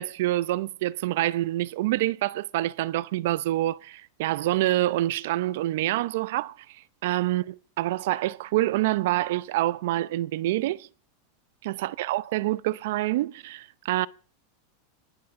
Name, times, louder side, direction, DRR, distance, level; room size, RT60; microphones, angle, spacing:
voice 1, 0.0-10.9 11.6-14.1, right 16 dB, 70° right, 0.7 m, -27 dB
19.5 x 11.5 x 3.8 m
supercardioid pair, 125°, 0 cm